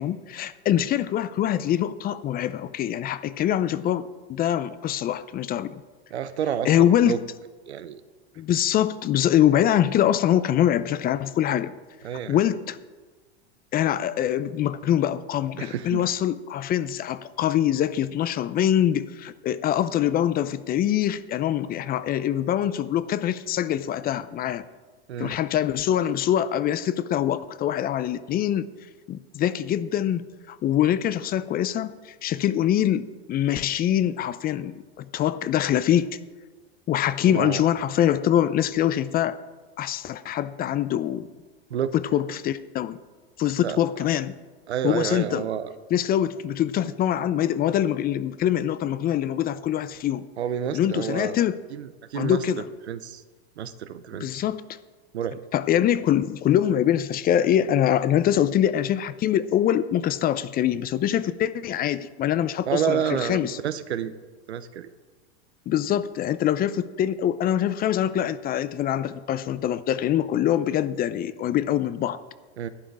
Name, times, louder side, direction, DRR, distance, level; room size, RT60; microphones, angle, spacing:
voice 1, 0.0-5.8 6.6-7.2 8.4-11.7 12.3-12.8 13.7-24.6 25.2-28.7 29.1-36.2 36.9-39.4 39.8-41.3 41.9-43.0 43.4-44.3 44.8-45.5 45.9-50.2 50.7-51.6 52.1-52.6 54.2-54.6 55.5-63.6 65.7-72.2, left 11 dB, 30° left, 15 dB, 0.5 m, -24 dB
voice 2, 6.1-7.2 7.7-8.0 12.0-12.4 15.6-16.0 25.1-25.4 37.3-37.6 41.7-41.9 43.6-43.8 44.7-45.7 50.4-51.4 51.7-52.4 52.9-53.2 53.6-54.4 55.1-55.4 62.6-64.1 64.5-64.9 72.6-72.7, right 9 dB, 85° right, 13 dB, 0.9 m, -29 dB
11.5 x 10.0 x 4.9 m, 1.3 s
hypercardioid pair, 105°, 32 cm